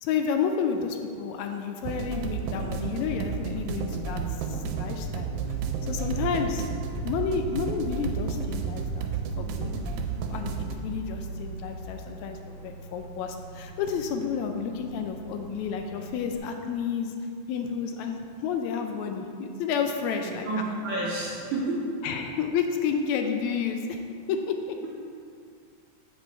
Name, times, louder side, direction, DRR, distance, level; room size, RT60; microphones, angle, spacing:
voice 1, 0.0-4.2 4.5-5.3 5.8-6.7 7.0-9.7 10.3-12.4 12.6-17.1 17.5-20.7 22.0-24.0 24.3-24.8, left 6 dB, 80° left, 5 dB, 1.8 m, -30 dB
sound 1, 1.8-10.7, right 5 dB, 80° right, 1.9 m, -32 dB
sound 2, 5.1-11.6, right 5 dB, 10° right, 0.5 m, -40 dB
Microwave oven, 6.0-16.4, right 1 dB, 55° left, 0.9 m, -45 dB
voice 2, 20.2-21.9, right 2 dB, 55° right, -6 dB, 2.4 m, -30 dB
8.0 x 5.3 x 4.4 m, 2.4 s
omnidirectional pair, 3.3 m